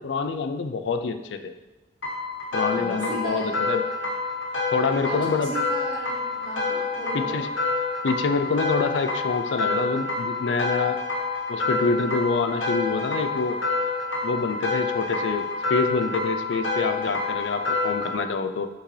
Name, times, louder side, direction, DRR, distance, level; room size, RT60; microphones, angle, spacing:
voice 1, 0.0-1.5 2.5-3.9 4.7-5.5 7.1-7.5 8.0-11.0 11.5-13.6 14.2-18.7, left 4 dB, 65° left, 9 dB, 0.4 m, -26 dB
sound 1, 2.0-18.2, left 3 dB, 80° left, 1.1 m, -28 dB
voice 2, 2.5-3.5 5.0-7.4, right 1 dB, 25° right, -7 dB, 1.9 m, -35 dB
5.9 x 5.7 x 3.2 m, 1.1 s
head